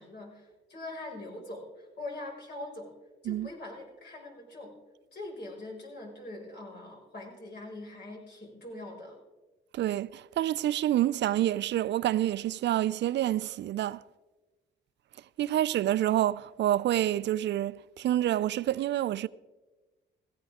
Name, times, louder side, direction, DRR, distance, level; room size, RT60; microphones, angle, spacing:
voice 1, 0.0-2.9 3.2-4.8 5.1-9.2, left 2 dB, 55° left, 5.4 m, -43 dB
voice 2, 9.7-14.0 15.4-19.3, right 13 dB, 65° right, 0.5 m, -28 dB
17.0 x 15.5 x 3.6 m
cardioid pair, 90°, 20 cm